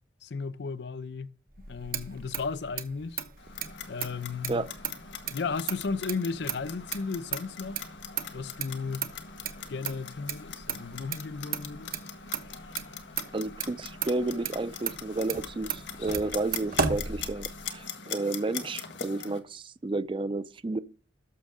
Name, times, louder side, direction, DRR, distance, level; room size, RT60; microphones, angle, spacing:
voice 1, 0.2-1.3 1.7-3.2 3.9-4.7 5.3-7.8 8.3-9.1 9.7-11.9, left 4 dB, 65° left, 0.5 m, -34 dB
Motor vehicle (road), 1.5-17.8, right 7 dB, 50° right, 1.0 m, -36 dB
Clock, 3.4-19.4, left 7 dB, 85° left, 1.6 m, -42 dB
voice 2, 13.3-20.8, right 2 dB, 30° right, 0.4 m, -31 dB
13.0 x 6.3 x 3.6 m
head